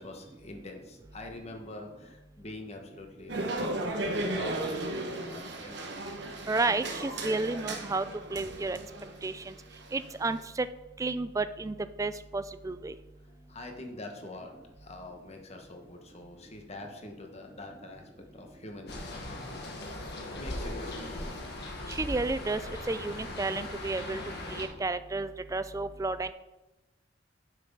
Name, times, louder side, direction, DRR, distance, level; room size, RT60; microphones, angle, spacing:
voice 1, 0.0-6.0 13.2-19.4 20.4-21.4, left 2 dB, 35° left, 3 dB, 1.2 m, -45 dB
sound 1, 3.3-10.4, right 2 dB, 60° right, 1.1 m, -35 dB
voice 2, 6.5-8.0 8.3-8.8 9.2-9.4 9.9-10.7 11.0-12.9 21.9-22.6 22.9-24.2 24.5-26.3, right 3 dB, 15° right, 13 dB, 0.3 m, -31 dB
sound 2, 18.9-24.7, left 1 dB, 55° left, 1.5 m, -39 dB
7.5 x 5.8 x 5.5 m, 1.0 s
head